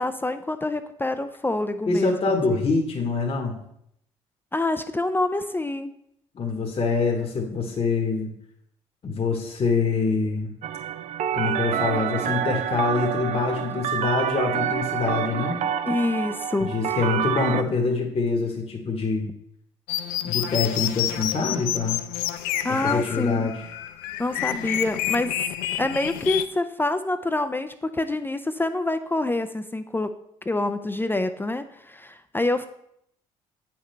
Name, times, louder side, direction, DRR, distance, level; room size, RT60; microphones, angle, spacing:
voice 1, 0.0-2.2 4.5-5.9 15.9-17.0 22.6-23.5 24.2-25.4 25.8-30.1 30.5-32.7, left 2 dB, 15° left, 9 dB, 0.5 m, -26 dB
voice 2, 1.9-3.6 6.3-8.3 9.0-10.5 11.3-15.6 16.6-19.3 20.2-22.0 22.7-23.7, left 4 dB, 40° left, 2 dB, 1.2 m, -25 dB
sound 1, 10.6-17.6, right 9 dB, 60° right, 0.4 m, -27 dB
sound 2, 19.9-26.4, left 12 dB, 80° left, 0.4 m, -29 dB
7.9 x 5.9 x 3.2 m, 0.73 s
hypercardioid pair, 55°, 14 cm